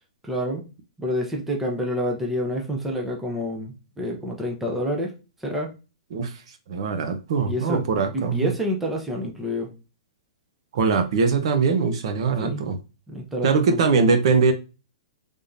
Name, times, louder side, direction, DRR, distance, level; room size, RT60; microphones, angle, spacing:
voice 1, 0.2-0.6 1.0-5.1 5.4-5.7 7.4-7.8 8.1-9.7 12.4-12.7 13.1-14.0, equal, 5° right, 0 dB, 0.7 m, -28 dB
voice 2, 6.7-8.5 10.7-12.8 13.4-14.5, right 5 dB, 55° right, 7 dB, 0.8 m, -21 dB
3.5 x 3.4 x 2.7 m, 0.30 s
hypercardioid pair, 155°, 4 cm